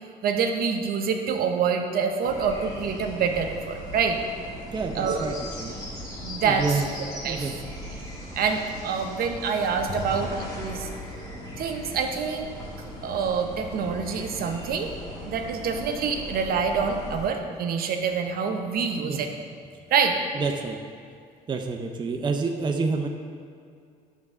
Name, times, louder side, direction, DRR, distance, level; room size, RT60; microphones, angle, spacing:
voice 1, 0.2-4.2 4.9-5.2 6.2-6.6 7.2-7.5 8.4-10.3 10.5-10.9 11.6-12.6 13.0-14.9 15.2-19.3 19.9-20.2, right 6 dB, 60° right, 4 dB, 0.9 m, -26 dB
sound 1, 2.2-17.3, equal, 20° left, 1.9 m, -38 dB
voice 2, 4.7-5.8 6.4-6.9 7.2-7.5 10.0-10.2 19.0-19.2 20.3-20.8 21.5-23.1, right 4 dB, 25° right, 3 dB, 0.6 m, -28 dB
9.3 x 3.6 x 6.6 m, 2.3 s
cardioid pair, 110°, 17 cm